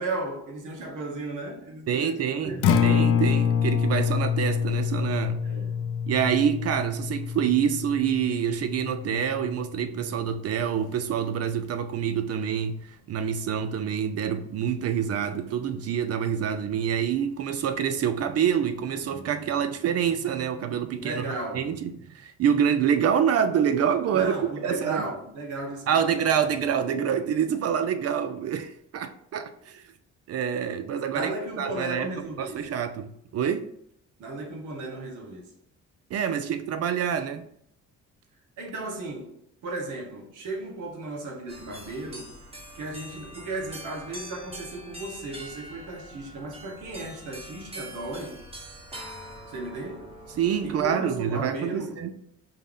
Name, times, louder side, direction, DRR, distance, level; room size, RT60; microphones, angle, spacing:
voice 1, 0.0-3.0 5.4-5.9 20.9-21.7 24.1-26.2 31.1-32.8 34.2-35.5 38.6-42.3 42.7-48.4 49.5-50.1 50.6-52.0, right 2 dB, 80° right, 1.1 m, -35 dB
voice 2, 1.9-2.5 2.8-5.4 6.1-21.2 21.5-24.3 24.6-25.0 25.9-29.8 30.3-32.1 32.4-33.7 36.1-37.5 50.4-52.1, right 8 dB, 55° right, 0.4 m, -26 dB
Acoustic guitar, 2.5-10.7, left 7 dB, 80° left, 0.5 m, -27 dB
sound 1, 41.5-50.9, right 1 dB, 20° right, 1.1 m, -44 dB
5.3 x 2.1 x 3.6 m
cardioid pair, 90°, 30 cm